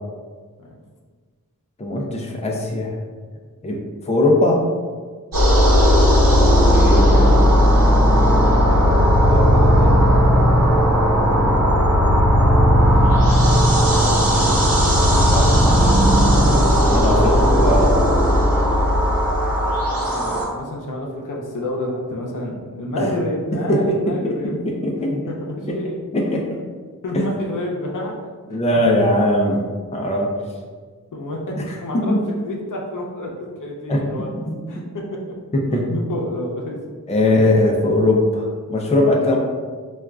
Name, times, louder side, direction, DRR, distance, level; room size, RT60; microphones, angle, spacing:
voice 1, 1.8-2.9 3.6-3.8 4.1-4.6 6.4-7.4 15.0-15.7 16.2-18.1 23.0-23.1 23.7-25.2 25.7-25.8 26.1-26.5 27.1-27.2 28.5-29.6 29.9-30.3 31.9-32.2 33.9-34.0 34.4-34.5 35.5-35.9 37.1-39.4, left 1 dB, 20° left, -1 dB, 0.5 m, -20 dB
sound 1, 5.3-20.4, equal, 75° right, 1.0 m, -15 dB
voice 2, 9.0-9.9 11.8-12.1 13.6-14.3 19.7-24.6 25.0-26.0 26.3-26.4 27.0-28.6 30.2-30.3 31.1-34.4 34.7-35.0 35.7-36.8, left 1 dB, 65° left, -2 dB, 0.6 m, -30 dB
4.2 x 2.3 x 2.4 m, 1.5 s
wide cardioid pair, 70°, 34 cm